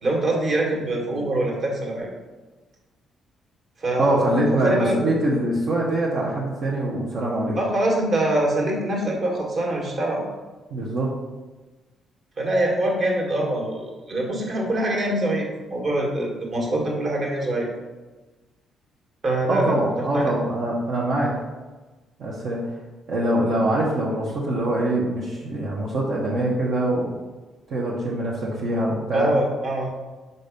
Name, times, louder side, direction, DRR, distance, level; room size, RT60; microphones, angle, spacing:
voice 1, 0.0-2.1 3.8-4.9 7.5-10.2 12.4-17.7 19.2-19.8 20.1-20.3 29.1-29.9, right 1 dB, 50° right, -1 dB, 1.8 m, -24 dB
voice 2, 4.0-7.6 10.7-11.1 19.5-21.4 22.2-22.6 23.1-27.1 27.7-29.3, right 1 dB, 70° right, -5 dB, 1.1 m, -24 dB
5.6 x 4.0 x 5.2 m, 1.2 s
cardioid pair, 90°, 0 cm